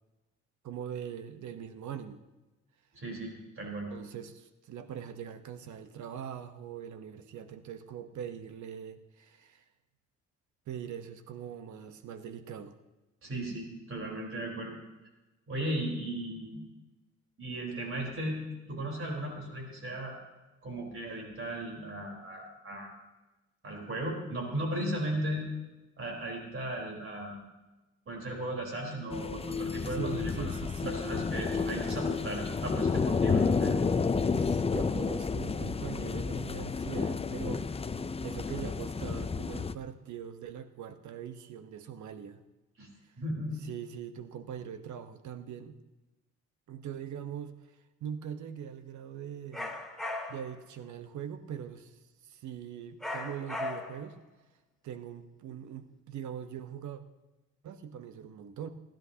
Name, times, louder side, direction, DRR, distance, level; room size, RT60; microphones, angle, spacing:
voice 1, 0.6-2.2 3.9-9.6 10.7-12.8 29.5-31.0 34.3-37.9 38.2-42.4 43.0-43.1 43.6-45.8 46.7-49.8 50.3-54.2 54.8-57.0 57.6-58.7, right 9 dB, 70° right, 9 dB, 1.1 m, -42 dB
voice 2, 2.9-3.9 13.2-14.8 15.5-16.6 17.4-18.4 18.7-20.1 20.6-22.9 23.6-25.5 26.0-27.4 28.1-30.5 30.9-33.8 42.8-42.9 43.2-43.7, right 1 dB, 45° right, 0 dB, 4.2 m, -36 dB
sound 1, 29.1-39.7, left 5 dB, 20° left, 0.5 m, -31 dB
sound 2, 49.5-50.5 53.0-54.1, left 2 dB, ahead, 2.2 m, -37 dB
28.0 x 10.5 x 2.9 m, 1.1 s
cardioid pair, 90°, 30 cm